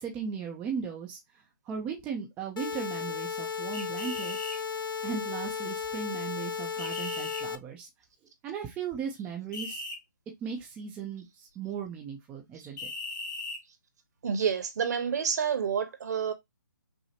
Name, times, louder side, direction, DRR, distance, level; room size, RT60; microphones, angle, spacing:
voice 1, 0.0-4.4 5.0-7.9 8.4-9.8 10.4-12.9, right 6 dB, 10° right, 0.5 m, -37 dB
sound 1, 2.6-7.6, left 6 dB, 90° left, 0.5 m, -34 dB
sound 2, 3.7-4.6 6.8-7.4 9.5-10.0 12.8-13.6, left 2 dB, 60° left, 2.1 m, -38 dB
voice 2, 14.2-16.3, right 7 dB, 55° right, 1.1 m, -28 dB
5.7 x 2.0 x 2.9 m
hypercardioid pair, 155°, 11 cm